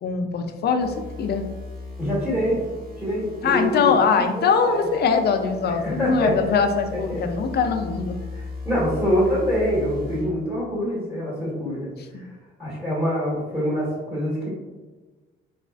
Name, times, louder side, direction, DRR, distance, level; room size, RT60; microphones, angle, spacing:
voice 1, 0.0-1.4 3.4-8.2 12.1-12.2, left 5 dB, 55° left, 6 dB, 0.5 m, -22 dB
sound 1, 0.8-10.5, left 3 dB, 50° right, 1.5 m, -38 dB
voice 2, 2.0-2.6 3.0-4.9 5.7-6.3 7.1-7.2 8.4-12.3 12.6-14.5, equal, 5° right, -8 dB, 1.4 m, -25 dB
4.1 x 2.4 x 2.4 m, 1.3 s
cardioid pair, 90°, 20 cm